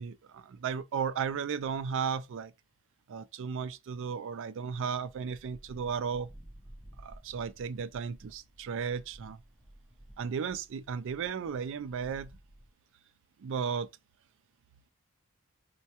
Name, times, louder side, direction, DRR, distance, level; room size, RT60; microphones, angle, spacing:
voice 1, 0.0-2.5 3.1-6.3 7.0-9.4 10.2-12.3 13.4-13.9, right 6 dB, 60° right, 0.4 m, -35 dB
sound 1, 5.1-12.7, right 1 dB, ahead, 0.5 m, -54 dB
4.4 x 2.2 x 2.8 m
head